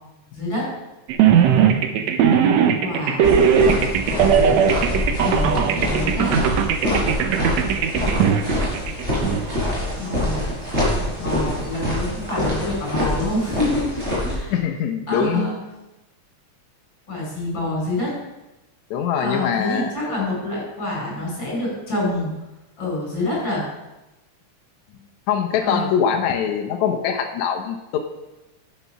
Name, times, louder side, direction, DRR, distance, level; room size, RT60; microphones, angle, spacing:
voice 1, 0.3-0.7 2.8-3.5 4.1-4.6 5.2-6.3 10.0-10.4 11.0-14.6 15.1-15.6 17.1-18.2 19.2-22.3 22.8-23.6 25.6-25.9, left 1 dB, 35° left, -3 dB, 5.5 m, -27 dB
sound 1, 1.1-9.4, right 8 dB, 70° right, 1.9 m, -18 dB
sound 2, 3.2-14.3, left 1 dB, 20° right, 4.9 m, -25 dB
voice 2, 14.5-15.5 18.9-19.9 25.3-28.0, left 8 dB, 75° left, 4 dB, 2.1 m, -23 dB
11.5 x 8.2 x 5.7 m, 0.99 s
omnidirectional pair, 3.5 m